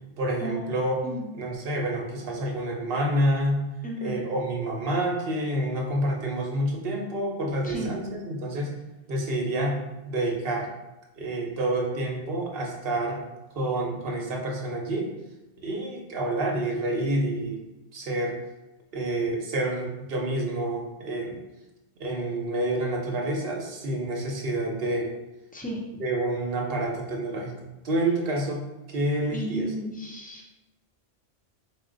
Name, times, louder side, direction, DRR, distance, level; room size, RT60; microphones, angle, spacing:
voice 1, 0.2-1.0 1.3-3.7 4.0-8.8 9.1-9.8 10.1-10.7 11.2-13.2 13.5-15.1 15.6-17.6 17.9-18.3 18.9-21.4 22.0-25.1 26.0-27.5 27.8-29.7, right 1 dB, 65° right, 0 dB, 0.9 m, -28 dB
voice 2, 3.8-4.2 7.6-7.9 25.5-25.8 29.3-30.4, right 1 dB, 15° left, -2 dB, 0.4 m, -33 dB
4.2 x 2.2 x 3.7 m, 1.0 s
omnidirectional pair, 1.1 m